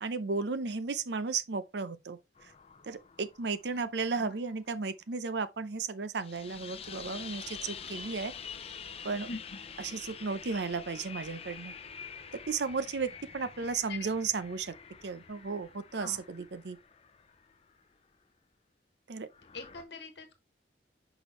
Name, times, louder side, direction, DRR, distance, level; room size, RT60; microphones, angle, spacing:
voice 1, 0.0-2.2 2.9-8.3 9.0-9.3 9.8-11.7 12.5-14.7 15.0-16.8 19.1-19.3, right 4 dB, 70° right, 0.6 m, -34 dB
sound 1, 2.4-4.6 6.2-17.8 19.3-19.8, left 6 dB, 35° left, 0.5 m, -47 dB
voice 2, 3.8-4.3 9.3-9.4 13.9-14.1 15.9-16.2 19.5-20.4, left 3 dB, 70° left, 1.2 m, -43 dB
6.2 x 5.0 x 3.0 m
head